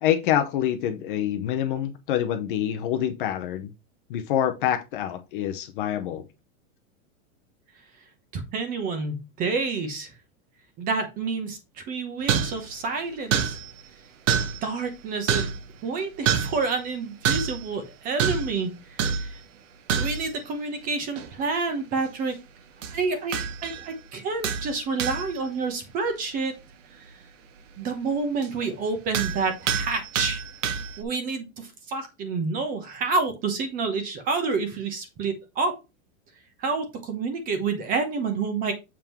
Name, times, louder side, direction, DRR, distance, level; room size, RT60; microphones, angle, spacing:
voice 1, 0.0-3.7 4.1-6.2, left 10 dB, 35° left, 0.7 m, -26 dB
voice 2, 8.3-10.1 10.8-13.6 14.6-15.5 15.8-19.4 20.0-22.4 22.9-26.6 27.0-27.2 27.8-30.4 31.0-35.7 36.6-38.7, right 4 dB, 20° right, 0.9 m, -29 dB
sound 1, 12.3-12.7 13.3-13.8 14.3-14.7 15.3-15.7 16.3-16.6 17.2-17.7 18.2-18.6 19.0-19.4 19.9-20.3 21.2-21.5 22.8-23.0 23.3-23.9 24.4-25.4 28.4-28.5 29.1-31.0, right 7 dB, 60° right, 1.2 m, -27 dB
7.4 x 3.7 x 4.4 m
supercardioid pair, 175°, 43 cm